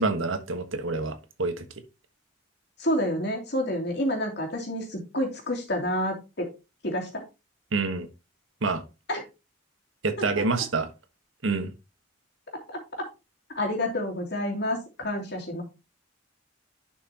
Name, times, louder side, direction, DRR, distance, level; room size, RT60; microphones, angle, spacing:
voice 1, 0.0-1.6 7.7-8.1 8.6-8.8 10.0-10.9 11.4-11.7, right 3 dB, 75° right, 1.4 m, -27 dB
voice 2, 2.8-6.5 6.8-7.2 9.1-9.2 12.7-12.8 13.5-15.6, left 1 dB, 55° left, 2.8 m, -29 dB
11.0 x 5.8 x 2.9 m
head